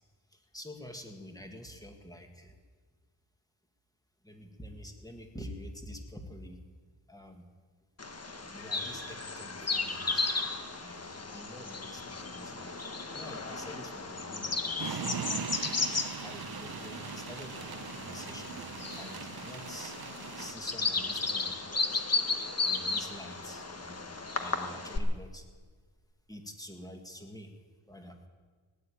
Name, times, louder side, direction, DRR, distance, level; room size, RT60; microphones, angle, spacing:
voice 1, 0.3-2.6 4.2-6.6 7.1-7.5 8.4-10.4 10.8-12.8 13.1-15.1 16.2-18.6 19.0-20.0 20.4-21.6 21.8-22.0 22.6-25.5 26.3-27.5 27.9-28.3, equal, 10° left, 4 dB, 1.9 m, -47 dB
Bird vocalization bird call bird song, 8.0-25.0, left 3 dB, 35° left, 1.4 m, -35 dB
sound 1, 14.8-20.5, right 7 dB, 55° right, 0.9 m, -40 dB
17.0 x 9.8 x 8.6 m, 1.5 s
wide cardioid pair, 100°, 43 cm